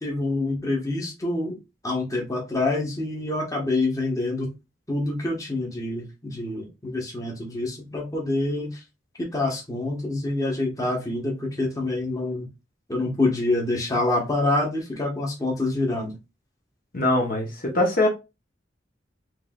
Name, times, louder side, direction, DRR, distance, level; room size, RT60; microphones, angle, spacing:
voice 1, 0.0-1.5 1.8-4.5 4.9-8.8 9.2-12.5 12.9-16.1, left 2 dB, 20° left, 1.2 m, -26 dB
voice 2, 16.9-18.1, left 1 dB, 50° left, 1.1 m, -22 dB
4.6 x 3.3 x 2.4 m
head